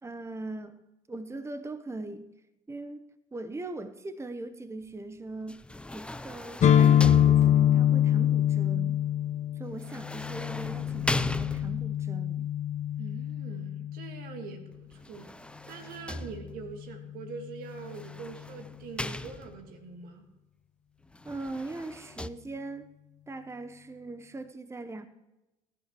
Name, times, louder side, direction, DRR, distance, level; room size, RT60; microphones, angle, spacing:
voice 1, 0.0-0.8 1.1-2.4 2.7-5.6 5.9-9.0 9.5-12.5 21.2-22.9 23.3-25.1, right 2 dB, 15° right, 10 dB, 0.9 m, -40 dB
sound 1, 5.5-7.9 9.8-12.1 14.9-16.8 17.8-19.8 21.1-22.3, left 1 dB, 5° left, 0.5 m, -37 dB
sound 2, 6.6-14.4, left 10 dB, 50° left, 0.9 m, -25 dB
voice 2, 13.0-20.3, right 5 dB, 75° right, 6 dB, 1.7 m, -43 dB
18.5 x 11.5 x 3.0 m, 0.97 s
supercardioid pair, 65°, 16 cm